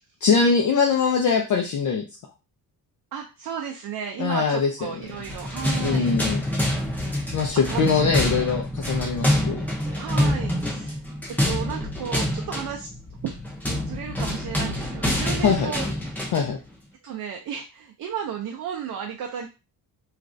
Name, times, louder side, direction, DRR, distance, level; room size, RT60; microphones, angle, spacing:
voice 1, 0.2-2.0 4.2-4.7 5.8-6.4 7.3-9.6 15.4-15.7 16.3-16.6, left 5 dB, 50° left, 1 dB, 0.5 m, -22 dB
voice 2, 3.1-6.6 7.7-8.3 10.0-11.0 11.4-12.9 13.2-13.3 13.8-16.3 17.0-19.5, right 8 dB, 60° right, 2 dB, 0.5 m, -34 dB
sound 1, 5.1-16.5, left 1 dB, 5° left, 0.5 m, -26 dB
3.1 x 2.4 x 2.5 m, 0.29 s
wide cardioid pair, 175°, 38 cm